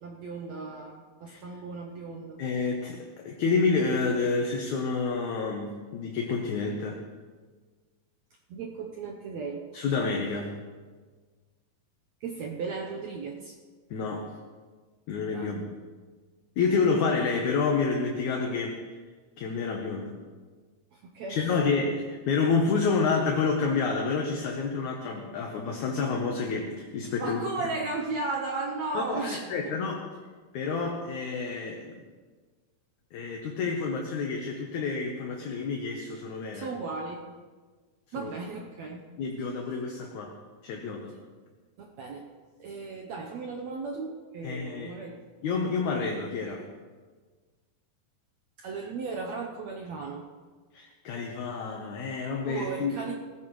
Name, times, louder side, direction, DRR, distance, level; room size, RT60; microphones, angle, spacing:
voice 1, 0.0-2.4 8.5-9.6 12.2-13.5 15.3-15.5 20.9-21.9 27.2-29.8 36.5-37.3 38.1-39.0 41.8-42.2 42.6-45.2 48.6-50.2 52.4-53.1, right 4 dB, 70° right, 0 dB, 1.8 m, -35 dB
voice 2, 2.4-7.0 9.7-10.5 13.9-14.3 15.1-15.7 16.6-18.8 19.4-20.2 21.3-27.4 28.9-29.2 29.5-30.0 30.5-32.0 33.1-36.7 38.2-38.3 39.2-40.4 40.6-41.1 44.4-44.9 45.4-46.7 50.7-53.0, left 4 dB, 65° left, 1 dB, 2.2 m, -29 dB
18.0 x 14.5 x 3.2 m, 1.4 s
omnidirectional pair, 4.0 m